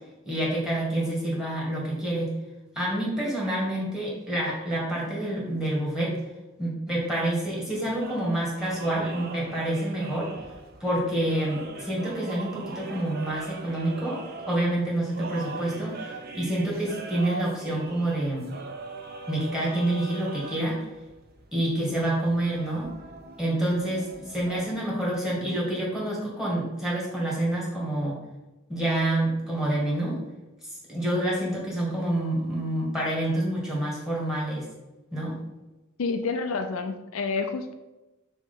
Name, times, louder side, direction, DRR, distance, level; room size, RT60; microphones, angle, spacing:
voice 1, 0.3-2.3 2.8-6.2 6.6-10.3 10.8-16.0 16.3-18.5 19.3-20.8 21.5-22.9 23.4-28.2 28.7-30.2 30.9-34.7 35.1-35.4, right 1 dB, ahead, -4 dB, 1.9 m, -27 dB
sound 1, 8.0-25.1, right 3 dB, 45° right, 0.6 m, -41 dB
voice 2, 36.0-37.7, left 4 dB, 75° left, 6 dB, 0.5 m, -29 dB
6.3 x 3.1 x 5.6 m, 1.0 s
head